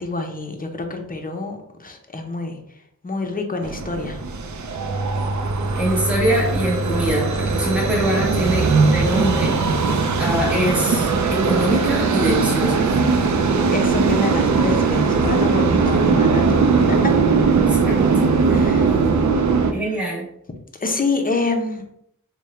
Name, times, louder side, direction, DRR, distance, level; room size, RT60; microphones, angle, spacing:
voice 1, 0.0-2.6 3.0-4.2 13.5-17.5 18.5-18.9 19.7-19.8 20.8-21.9, left 3 dB, 25° left, 3 dB, 0.6 m, -27 dB
sound 1, 3.6-19.7, right 4 dB, 60° right, 0.5 m, -19 dB
voice 2, 5.7-9.6 10.2-12.9 17.6-18.4 19.7-20.3, right 1 dB, 5° right, -4 dB, 1.0 m, -23 dB
3.5 x 2.1 x 4.1 m, 0.75 s
wide cardioid pair, 95°, 32 cm